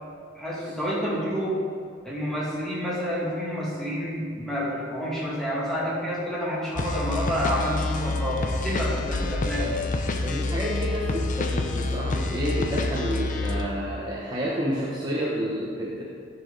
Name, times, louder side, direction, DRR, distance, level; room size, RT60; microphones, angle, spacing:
voice 1, 0.3-1.6 2.0-9.8, equal, 5° left, -7 dB, 2.3 m, -29 dB
sound 1, 6.8-13.7, left 2 dB, 45° left, 0.6 m, -28 dB
voice 2, 10.2-16.0, equal, 25° right, -6 dB, 1.1 m, -30 dB
13.0 x 6.0 x 4.0 m, 2.3 s
head